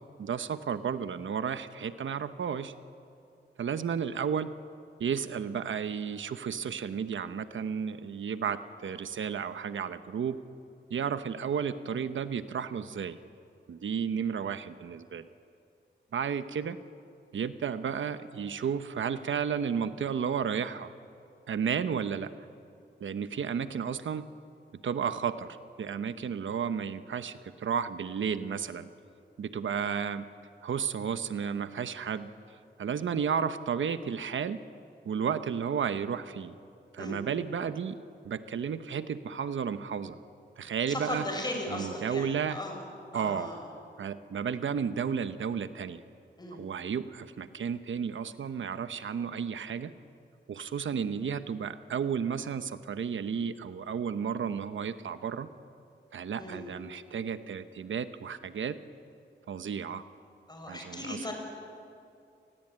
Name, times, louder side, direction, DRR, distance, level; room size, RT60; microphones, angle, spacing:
voice 1, 0.2-2.7 3.6-4.5 5.0-10.4 10.9-13.2 13.7-15.3 16.1-16.8 17.3-20.9 21.5-22.3 23.0-24.3 24.8-28.9 29.4-30.3 30.6-32.3 32.8-34.6 35.1-36.5 36.9-38.0 38.2-40.2 40.6-41.2 41.7-42.6 43.1-43.5 44.0-46.0 46.5-49.9 50.5-55.5 56.1-58.7 59.5-60.0 60.7-61.3, right 7 dB, 90° right, 11 dB, 1.0 m, -32 dB
voice 2, 40.9-42.8 43.1-43.7 46.4-46.6 56.4-56.7 60.5-61.3, left 1 dB, 20° left, 2 dB, 5.8 m, -37 dB
29.0 x 20.5 x 8.9 m, 2.5 s
wide cardioid pair, 155°, 19 cm